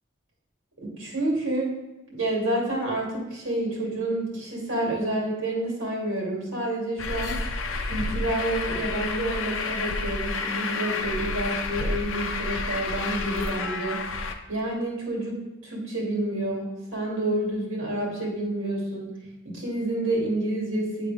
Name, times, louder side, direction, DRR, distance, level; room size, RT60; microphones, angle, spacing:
voice 1, 0.8-1.7 2.1-7.4 7.8-19.2 19.4-21.1, right 1 dB, 70° right, -4 dB, 2.4 m, -29 dB
Truck, 7.0-14.3, left 3 dB, 75° left, 0.5 m, -30 dB
9.3 x 3.7 x 3.4 m, 1.0 s
head